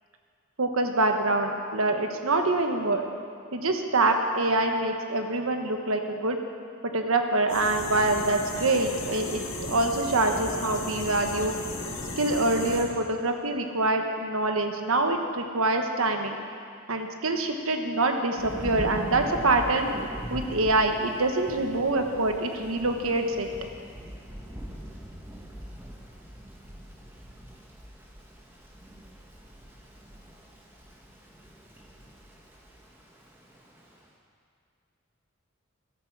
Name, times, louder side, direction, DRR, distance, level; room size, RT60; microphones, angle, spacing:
voice 1, 0.6-3.0 3.5-6.4 6.8-11.5 12.2-16.4 16.9-19.9 20.3-23.5, right 2 dB, 90° right, 5 dB, 1.2 m, -25 dB
sound 1, 7.5-12.8, left 2 dB, 70° left, 2.4 m, -35 dB
Thunder / Rain, 18.4-34.0, equal, 10° right, 1.5 m, -41 dB
14.0 x 13.0 x 4.7 m, 2.3 s
head